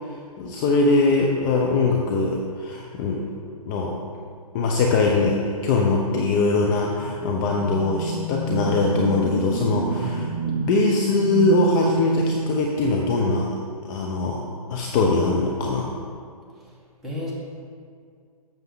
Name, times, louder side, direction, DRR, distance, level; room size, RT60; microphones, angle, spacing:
voice 1, 0.4-3.2 3.7-4.0 4.5-10.3 10.5-13.5 13.9-15.9, left 3 dB, 30° left, -1 dB, 0.7 m, -22 dB
sound 1, 6.9-13.5, right 3 dB, 60° right, 0.8 m, -28 dB
voice 2, 10.0-10.3 16.6-16.7 17.0-17.3, left 1 dB, ahead, -8 dB, 2.0 m, -32 dB
8.3 x 6.7 x 4.0 m, 2.1 s
figure-of-eight pair, 130°, 19 cm